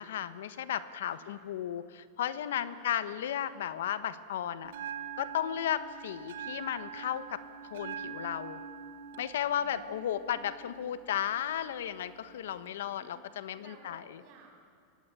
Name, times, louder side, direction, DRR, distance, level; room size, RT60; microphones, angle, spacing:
voice 1, 0.0-4.7 5.2-7.4 7.7-8.6 9.2-14.0, left 10 dB, 85° left, 13 dB, 1.2 m, -34 dB
voice 2, 1.1-1.5 2.6-3.3 9.4-11.0 12.8-13.3 13.5-14.6, right 4 dB, 40° right, 1 dB, 7.1 m, -58 dB
Bell, 4.6-12.6, right 8 dB, 75° right, 1.5 m, -45 dB
24.0 x 18.5 x 9.0 m, 2.3 s
supercardioid pair, 150°, 0 cm